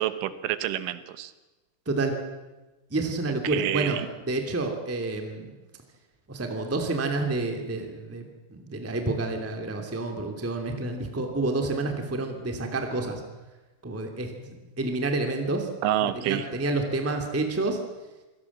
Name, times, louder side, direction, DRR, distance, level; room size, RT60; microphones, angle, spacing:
voice 1, 0.0-1.3 3.4-4.0 15.8-16.5, right 12 dB, 85° right, 13 dB, 3.5 m, -28 dB
voice 2, 2.9-5.5 6.3-13.2 13.8-15.7 16.0-17.8, right 2 dB, 5° right, 4 dB, 1.3 m, -29 dB
27.0 x 18.0 x 7.3 m, 1.1 s
omnidirectional pair, 5.3 m